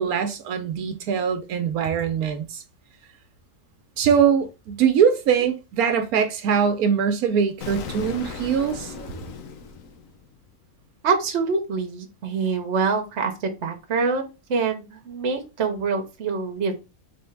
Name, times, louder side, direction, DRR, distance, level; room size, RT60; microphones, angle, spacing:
voice 1, 0.0-2.6 4.0-8.9, right 7 dB, 85° right, 1.1 m, -22 dB
Explosion, 7.6-10.5, left 5 dB, 70° left, 1.1 m, -37 dB
voice 2, 11.0-16.7, right 4 dB, 55° right, 1.1 m, -25 dB
3.6 x 3.4 x 3.2 m
omnidirectional pair, 1.5 m